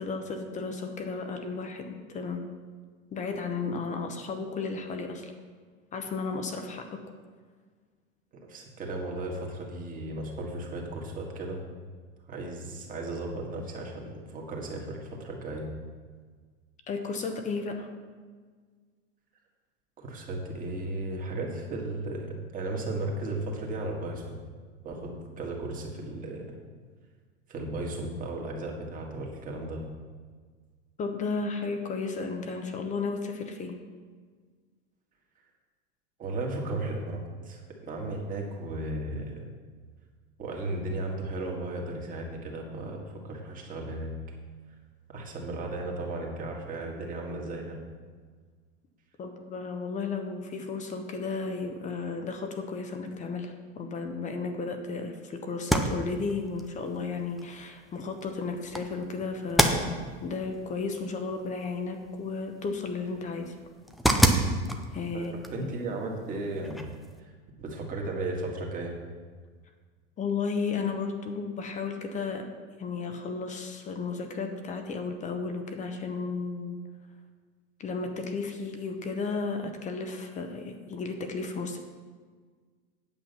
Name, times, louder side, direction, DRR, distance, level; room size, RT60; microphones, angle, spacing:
voice 1, 0.0-2.4 3.1-5.3 5.9-7.0 16.9-17.9 31.0-33.8 49.2-63.5 64.9-65.7 70.2-72.5 72.8-76.8 77.8-81.8, left 4 dB, 20° left, 6 dB, 0.8 m, -34 dB
voice 2, 8.5-11.6 12.3-15.7 20.0-24.4 24.8-26.4 27.5-29.8 36.2-39.5 40.4-44.1 45.1-47.8 65.1-66.9 67.2-67.3 67.6-68.9, right 2 dB, 25° right, 0 dB, 1.8 m, -35 dB
sound 1, 55.5-67.2, right 1 dB, ahead, 0.4 m, -31 dB
8.9 x 7.6 x 5.6 m, 1.6 s
supercardioid pair, 140°, 33 cm